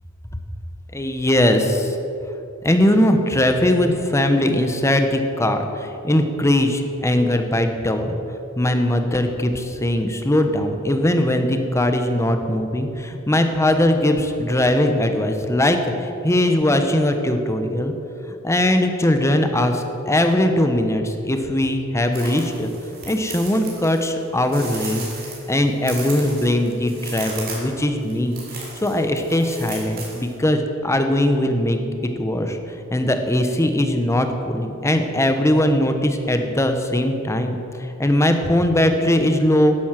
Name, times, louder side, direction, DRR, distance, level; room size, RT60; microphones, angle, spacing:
voice 1, 0.9-2.0 2.6-8.2 8.6-17.9 18.4-22.7 23.1-25.1 25.5-28.4 28.8-31.8 32.2-32.6 32.9-37.6 38.0-39.8, left 1 dB, 15° left, 6 dB, 1.0 m, -20 dB
sound 1, 22.1-30.3, right 3 dB, 45° right, 3.7 m, -36 dB
11.5 x 10.5 x 7.5 m, 2.9 s
head